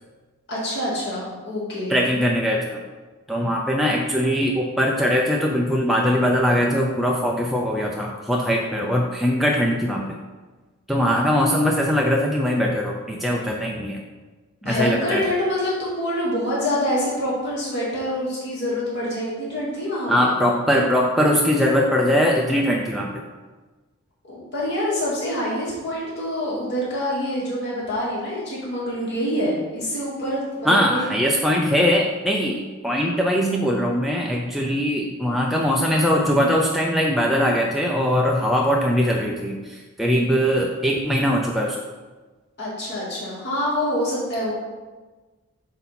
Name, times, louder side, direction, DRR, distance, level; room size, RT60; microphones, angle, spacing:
voice 1, 0.5-2.2 14.6-20.3 24.3-31.1 42.6-44.5, left 1 dB, 50° left, -8 dB, 2.1 m, -26 dB
voice 2, 1.9-2.8 3.3-10.1 10.9-14.0 14.6-15.3 20.1-23.1 30.7-41.8, equal, ahead, -1 dB, 0.4 m, -21 dB
8.0 x 2.7 x 5.7 m, 1.3 s
head